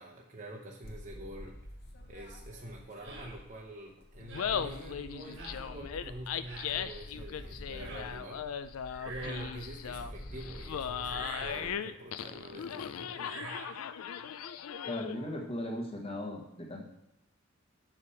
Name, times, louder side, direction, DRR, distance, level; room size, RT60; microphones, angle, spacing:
voice 1, 0.0-1.6 2.1-8.5 9.1-13.6, right 1 dB, 35° right, -2 dB, 0.7 m, -46 dB
sound 1, 0.8-3.7 4.0-11.7, equal, 50° left, 1.0 m, -48 dB
sound 2, 3.0-3.3 4.3-4.6 5.4-5.6 6.4-6.7 7.8-8.1 8.9-9.6 11.0-11.7 13.1-13.8, right 3 dB, 65° right, 1.6 m, -45 dB
Laughter, 4.2-15.3, left 8 dB, 80° left, 0.4 m, -38 dB
voice 2, 14.9-16.9, left 1 dB, 25° left, 1 dB, 1.1 m, -37 dB
6.8 x 4.9 x 5.6 m, 0.84 s
head